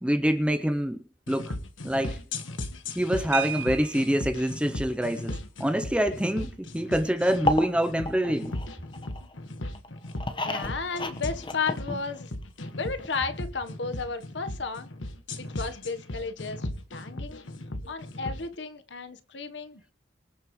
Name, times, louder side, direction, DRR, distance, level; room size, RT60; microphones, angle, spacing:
voice 1, 0.0-1.6 1.8-2.2 3.0-8.6, equal, 5° right, 0.6 m, -26 dB
sound 1, 1.3-18.4, left 1 dB, 85° left, 1.4 m, -37 dB
sound 2, 3.3-4.4 5.8-6.0 6.3-6.5 6.9-7.2, right 10 dB, 70° right, 0.5 m, -36 dB
sound 3, 7.3-9.3 9.7-12.4 12.7-12.8 13.0-13.1, left 1 dB, 25° left, 1.1 m, -32 dB
voice 2, 10.3-12.3 12.8-14.9 15.4-17.4 17.8-19.9, left 4 dB, 70° left, 1.2 m, -34 dB
25.5 x 8.5 x 3.1 m
head